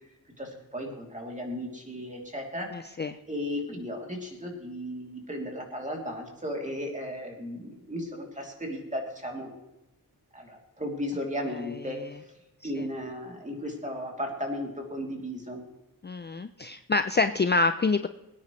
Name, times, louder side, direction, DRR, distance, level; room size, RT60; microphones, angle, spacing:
voice 1, 0.4-2.7 3.3-9.5 10.3-12.0 12.6-15.6, equal, 20° right, 0 dB, 3.0 m, -35 dB
voice 2, 2.7-3.2 12.0-12.1 12.6-12.8 16.0-18.1, left 3 dB, 30° left, 10 dB, 0.5 m, -27 dB
23.0 x 9.5 x 3.2 m, 0.97 s
wide cardioid pair, 140°, 37 cm